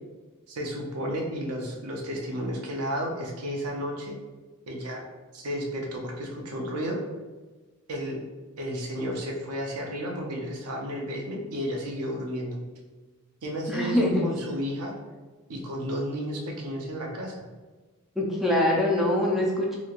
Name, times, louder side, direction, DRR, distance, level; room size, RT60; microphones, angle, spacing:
voice 1, 0.5-4.1 4.7-5.0 5.3-7.0 7.9-8.2 8.6-12.6 13.4-14.9 15.5-17.5, equal, 85° right, 0 dB, 0.6 m, -32 dB
voice 2, 13.7-14.3 18.2-19.8, left 1 dB, ahead, -3 dB, 0.4 m, -24 dB
2.9 x 2.7 x 2.4 m, 1.3 s
head